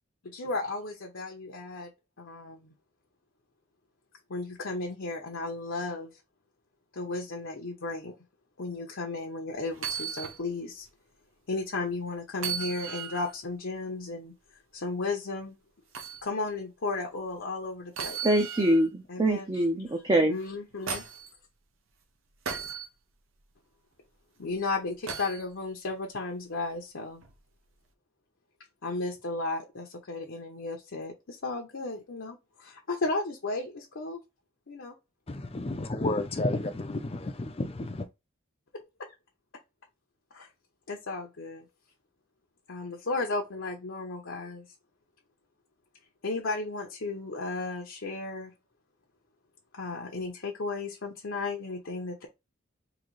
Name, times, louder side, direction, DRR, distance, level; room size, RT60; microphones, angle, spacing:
voice 1, 0.2-1.9 2.2-2.7 4.3-6.1 6.9-8.1 8.6-10.9 11.5-14.3 14.7-15.6 16.2-18.2 19.1-19.6 20.3-21.0 24.4-27.2 28.8-34.2 34.7-34.9 39.0-39.1 40.3-40.5 40.9-41.6 42.7-44.7 46.2-48.5 49.7-52.3, left 3 dB, 65° left, 0.7 m, -34 dB
sound 1, 9.7-10.4 10.9-11.0 12.4-13.4 15.9-16.2 18.0-18.9 20.4-21.3 22.5-22.9 25.1-25.4 27.2-27.4, right 6 dB, 70° right, 0.7 m, -36 dB
voice 2, 18.2-20.3, right 1 dB, 20° right, 0.6 m, -24 dB
voice 3, 35.3-38.0, left 2 dB, 30° left, 0.5 m, -31 dB
3.9 x 2.8 x 3.1 m
head